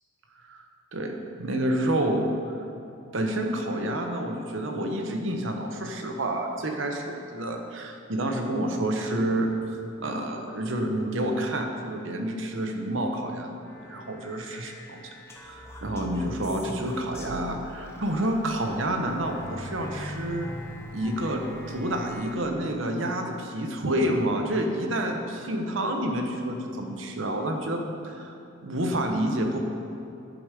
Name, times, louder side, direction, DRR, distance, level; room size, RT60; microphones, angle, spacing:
voice 1, 0.9-2.6 3.1-15.1 15.4-20.5 20.9-21.4 21.7-28.3 28.6-29.6, right 1 dB, 60° right, 3 dB, 0.9 m, -29 dB
sound 1, 13.6-22.4, left 1 dB, 10° left, 0.7 m, -42 dB
10.5 x 5.0 x 4.9 m, 2.8 s
head